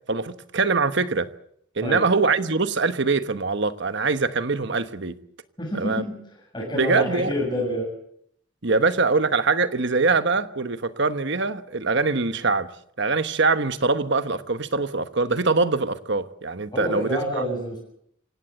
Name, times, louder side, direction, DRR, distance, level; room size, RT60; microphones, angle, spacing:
voice 1, 0.1-1.3 1.8-5.1 5.8-6.0 6.7-7.3 8.6-12.7 13.0-17.4, right 4 dB, 55° right, 1.2 m, -23 dB
voice 2, 5.6-6.2 6.5-7.9 16.7-17.8, equal, 20° left, 7.5 m, -27 dB
26.5 x 17.0 x 7.7 m
head